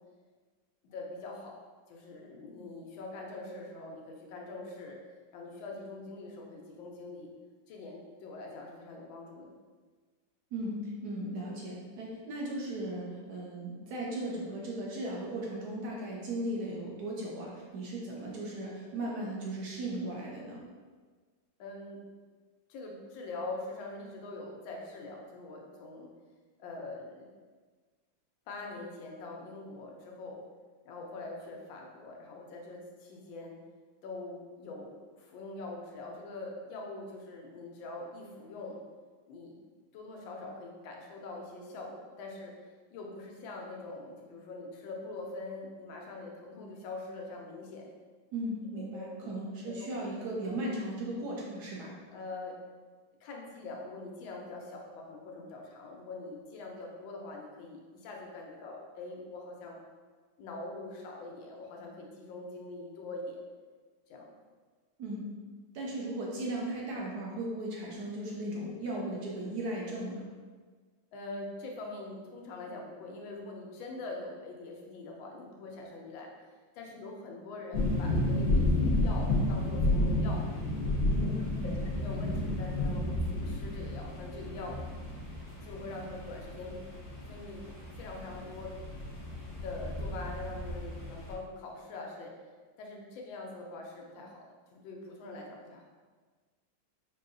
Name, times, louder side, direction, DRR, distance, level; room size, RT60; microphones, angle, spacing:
voice 1, 0.8-1.6 1.9-5.0 5.3-7.3 7.7-9.5 21.6-22.0 22.7-26.1 26.6-27.3 28.5-30.4 30.8-33.6 34.0-38.8 39.3-39.5 39.9-42.5 42.9-47.9 48.7-49.9 52.1-52.5 53.2-59.8 60.4-63.4 64.1-64.3 71.1-76.3 76.8-80.4 81.2-81.3 81.6-84.8 85.6-86.8 87.2-87.6 87.9-88.7 89.6-92.3 92.8-94.4 94.7-95.8, left 2 dB, 90° left, 0 dB, 1.4 m, -43 dB
voice 2, 10.5-20.6 48.3-52.0 65.0-65.2 65.7-70.2 81.1-81.9, right 1 dB, 65° right, -3 dB, 1.2 m, -37 dB
sound 1, 77.7-91.3, left 1 dB, 60° left, 0.5 m, -32 dB
4.6 x 2.7 x 2.5 m, 1.5 s
omnidirectional pair, 2.1 m